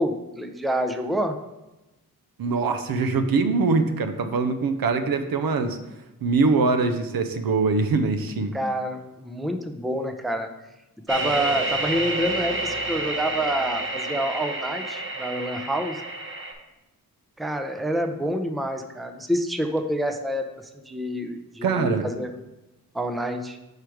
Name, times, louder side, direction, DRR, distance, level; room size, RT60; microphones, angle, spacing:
voice 1, 0.0-1.4 8.5-10.5 11.1-16.0 17.4-20.5 20.8-22.3 22.9-23.6, equal, ahead, 6 dB, 0.5 m, -27 dB
voice 2, 2.4-5.8 6.2-8.5 21.6-22.1, right 4 dB, 75° right, 8 dB, 0.6 m, -23 dB
sound 1, 11.1-16.5, right 2 dB, 35° right, 1.1 m, -29 dB
4.9 x 4.7 x 4.6 m, 0.99 s
cardioid pair, 70°, 35 cm